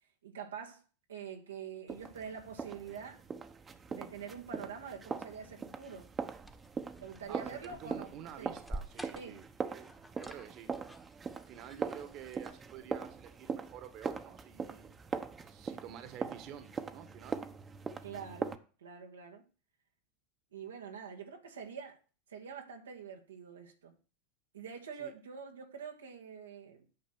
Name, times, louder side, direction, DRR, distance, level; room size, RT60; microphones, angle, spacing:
voice 1, 0.2-0.8 1.1-3.2 3.9-6.1 7.0-8.1 8.4-8.5 9.1-9.4 18.0-19.4 20.5-22.0 22.3-23.9 24.5-26.8, right 6 dB, 90° right, 1.7 m, -45 dB
sound 1, 1.9-18.6, right 5 dB, 25° right, 1.1 m, -41 dB
sound 2, 6.2-12.9, right 1 dB, 5° left, 1.3 m, -50 dB
voice 2, 7.3-9.9 10.2-10.7 11.3-14.9 15.4-17.4 25.0-25.1, right 9 dB, 50° right, 1.6 m, -49 dB
9.5 x 6.4 x 6.2 m
hypercardioid pair, 95°, 0 cm